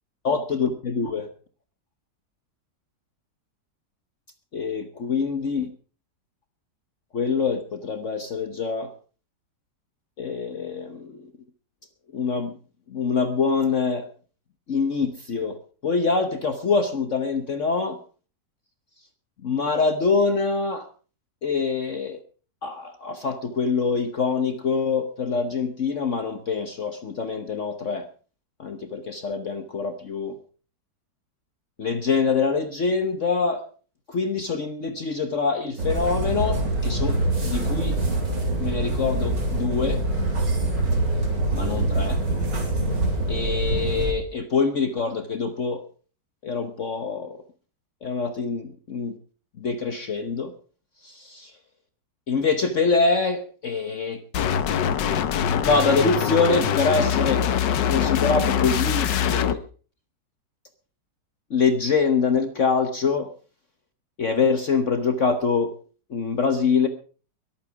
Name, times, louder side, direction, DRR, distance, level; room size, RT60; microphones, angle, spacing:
voice 1, 0.2-1.3 4.5-5.7 7.1-8.9 10.2-11.3 12.1-12.5 12.9-14.1 14.7-15.6 15.8-18.0 19.4-20.9 21.4-22.2 22.6-28.0 28.6-30.4 31.8-33.6 34.1-38.0 38.6-40.0 41.5-42.2 43.3-45.8 46.4-47.4 48.0-49.2 49.6-50.5 51.0-51.5 52.3-54.2 55.5-57.4 57.9-59.6 61.5-63.3 64.2-65.7 66.1-66.9, left 4 dB, 50° left, 8 dB, 1.3 m, -25 dB
sound 1, 35.8-44.1, right 2 dB, 80° right, 4.4 m, -24 dB
sound 2, 54.3-59.5, left 8 dB, 90° left, 1.6 m, -23 dB
22.5 x 8.9 x 4.8 m, 0.39 s
omnidirectional pair, 1.9 m